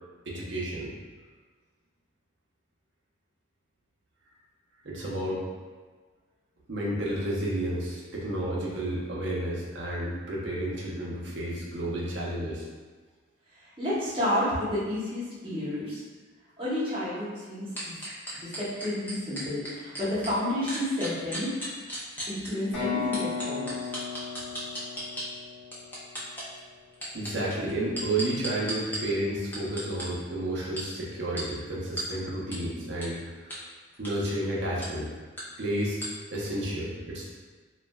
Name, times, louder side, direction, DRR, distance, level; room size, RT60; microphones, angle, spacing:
voice 1, 0.3-0.9 4.8-5.4 6.7-12.7 27.1-33.2 34.0-35.1 35.6-36.0 36.3-37.2, right 1 dB, 60° right, -4 dB, 0.6 m, -31 dB
voice 2, 13.5-16.0 16.6-17.9 18.4-21.6 22.3-23.9, left 1 dB, 25° right, -10 dB, 0.9 m, -31 dB
sound 1, 17.8-20.3 20.7-22.5 23.1-25.2 25.7-26.4 26.9-29.0 29.5-30.0 30.8-30.9 31.4-31.5 32.0-32.1 32.5-32.6 33.0-33.1 33.5-33.6 33.9-34.1 34.8-34.9 35.4-35.5 36.0-36.1, right 1 dB, 10° left, 0.5 m, -35 dB
sound 2, 22.7-26.5, left 5 dB, 70° left, 1.0 m, -35 dB
3.2 x 2.4 x 2.2 m, 1.4 s
head